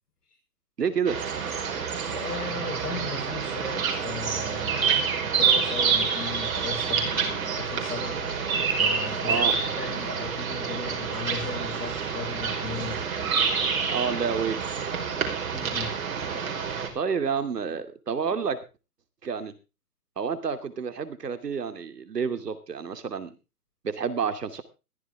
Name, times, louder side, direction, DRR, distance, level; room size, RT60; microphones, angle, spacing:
voice 1, 0.8-1.2 9.2-9.5 13.9-14.6 16.3-16.4 16.9-18.6 19.2-19.5 20.2-23.3 23.8-24.6, right 6 dB, 80° right, 11 dB, 2.8 m, -29 dB
sound 1, 1.1-16.9, right 6 dB, 60° right, 5.2 m, -27 dB
voice 2, 2.1-8.2 8.8-13.0 15.5-16.6, left 4 dB, 75° left, -2 dB, 6.1 m, -37 dB
15.0 x 14.0 x 3.5 m, 0.30 s
hypercardioid pair, 155°, 47 cm